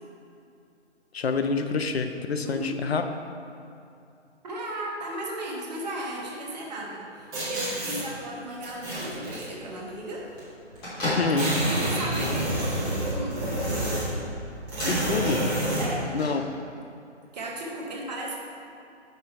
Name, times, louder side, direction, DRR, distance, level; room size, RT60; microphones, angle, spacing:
voice 1, 1.1-3.0 11.0-11.6 14.9-15.5 16.1-16.4, left 4 dB, 60° left, 7 dB, 0.6 m, -27 dB
voice 2, 2.4-2.8 4.4-10.3 11.7-13.5 15.8-16.1 17.3-18.4, right 1 dB, 35° right, -2 dB, 1.1 m, -35 dB
sound 1, 7.3-8.0 8.6-9.4 10.4-10.5 10.7-10.8 11.1-14.2 14.7-15.9, right 1 dB, 10° right, 1.2 m, -28 dB
Bell / Microwave oven, 8.6-16.9, equal, 10° left, 1.2 m, -38 dB
5.9 x 5.5 x 4.5 m, 2.6 s
figure-of-eight pair, 150°, 35 cm